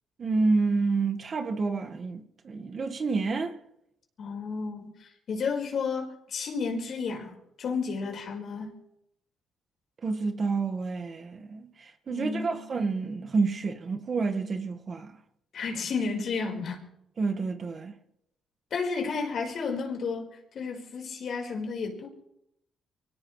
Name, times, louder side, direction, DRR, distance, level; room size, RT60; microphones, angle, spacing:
voice 1, 0.2-3.6 10.0-15.2 17.2-17.9, right 4 dB, 45° right, 1.8 m, -29 dB
voice 2, 4.2-8.7 12.1-12.6 15.5-16.8 18.7-20.3 20.5-22.1, left 5 dB, 60° left, 5.0 m, -32 dB
24.5 x 17.5 x 3.4 m
cardioid pair, 90°, 0 cm